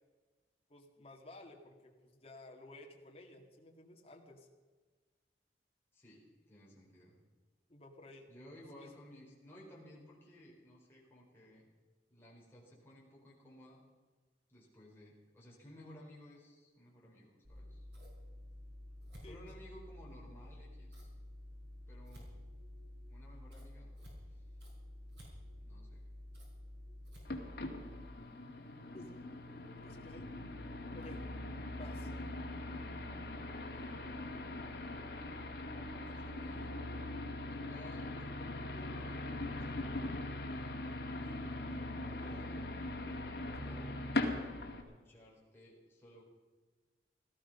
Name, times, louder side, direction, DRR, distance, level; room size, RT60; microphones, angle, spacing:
voice 1, 0.7-4.5 7.7-8.3 8.8-8.9 19.2-19.6 28.9-29.3 29.8-30.3 30.9-31.3 31.8-32.1, left 1 dB, 35° left, 2 dB, 2.1 m, -54 dB
voice 2, 5.9-7.2 8.3-11.7 12.1-13.8 14.5-17.9 19.2-21.1 21.9-22.3 23.1-23.9 24.3-24.4 25.6-26.1 33.5-34.1 35.9-36.8 37.5-42.7 43.6-44.0 44.8-46.2, equal, 15° left, -5 dB, 4.5 m, -57 dB
Scissors, 17.4-28.1, left 1 dB, 70° right, 5.3 m, -51 dB
sound 1, 27.3-44.8, left 2 dB, 60° left, 2.1 m, -41 dB
17.5 x 13.5 x 5.7 m, 1.4 s
head